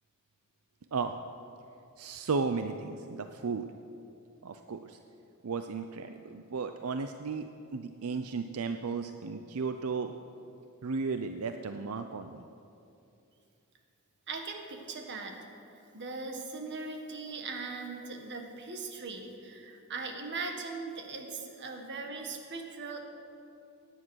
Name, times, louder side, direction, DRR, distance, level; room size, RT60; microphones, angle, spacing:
voice 1, 2.0-3.7 4.4-5.0 5.4-10.1 10.8-12.4, right 4 dB, 85° right, 8 dB, 0.6 m, -34 dB
voice 2, 14.3-15.4 15.9-23.0, right 3 dB, 55° right, 3 dB, 1.7 m, -39 dB
17.0 x 9.9 x 6.4 m, 2.7 s
head